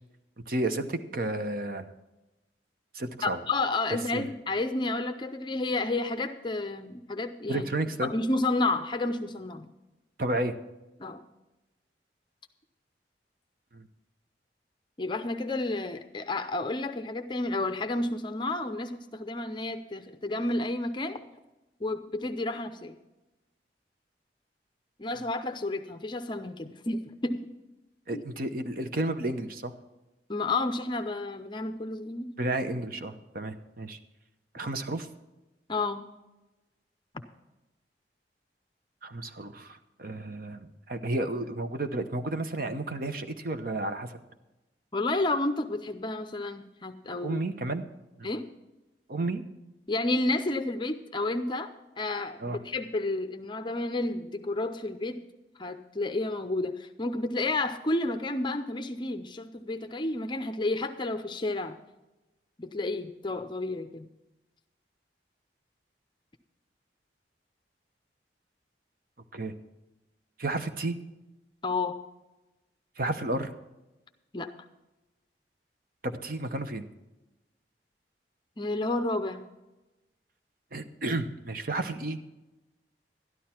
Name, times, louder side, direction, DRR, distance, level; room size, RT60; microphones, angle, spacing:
voice 1, 0.5-1.9 2.9-3.4 4.1-4.3 7.5-8.1 10.2-10.5 13.7-13.8 28.1-29.7 32.4-34.0 34.5-35.1 39.0-44.2 47.2-47.8 48.2-48.3 49.1-49.4 52.4-52.6 69.3-69.5 70.4-71.0 73.0-73.5 76.0-76.8 80.7-82.2, right 2 dB, 55° right, 8 dB, 0.9 m, -32 dB
voice 2, 3.2-7.7 8.0-9.7 11.0-11.2 15.0-21.2 21.8-22.9 25.0-27.5 28.1-28.2 30.3-32.3 35.7-36.1 44.9-47.4 48.2-48.5 49.9-55.2 55.6-61.8 62.6-64.1 71.6-72.0 74.3-74.5 78.6-79.5, left 2 dB, 25° left, 8 dB, 0.6 m, -31 dB
12.5 x 11.5 x 4.4 m, 1.0 s
head